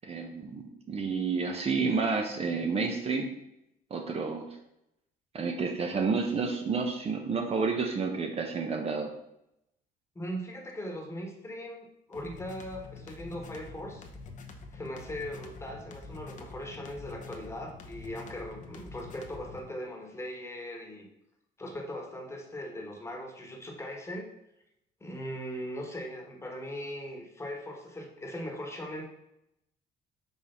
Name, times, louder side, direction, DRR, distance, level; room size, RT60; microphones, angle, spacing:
voice 1, 0.0-3.3 3.9-4.5 5.3-9.1, right 4 dB, 35° right, 3 dB, 0.8 m, -30 dB
voice 2, 10.1-14.0 14.7-21.1 21.6-24.3 25.0-29.0, equal, 15° left, 1 dB, 1.4 m, -39 dB
sound 1, 12.1-19.7, left 3 dB, 45° left, 0.9 m, -46 dB
5.5 x 3.4 x 5.7 m, 0.82 s
cardioid pair, 110°, 17 cm